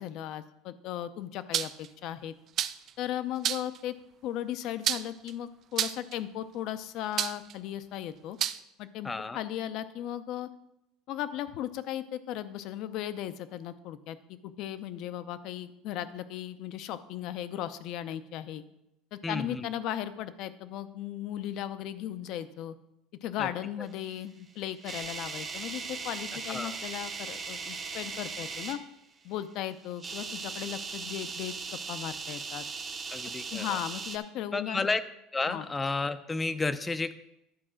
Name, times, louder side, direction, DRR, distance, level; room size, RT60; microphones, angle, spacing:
voice 1, 0.0-2.3 3.0-3.9 4.2-8.4 8.8-10.5 11.1-18.6 19.1-22.8 23.2-28.8 29.2-32.6 33.5-34.8 35.5-35.7, left 11 dB, 55° left, 13 dB, 0.6 m, -36 dB
sound 1, 1.5-1.9 2.6-2.9 3.4-3.8 4.8-5.3 5.8-6.1 7.2-7.5 8.4-8.6, right 10 dB, 40° right, 0.4 m, -29 dB
voice 2, 9.0-9.4 19.2-19.7 23.4-23.5 26.5-26.8 33.1-33.8 34.5-35.0 35.3-37.1, left 3 dB, 15° left, 12 dB, 0.5 m, -31 dB
sound 2, 24.4-28.8 29.9-34.2, right 5 dB, 25° right, 0.8 m, -38 dB
11.0 x 4.8 x 6.3 m, 0.85 s
cardioid pair, 135°, 0 cm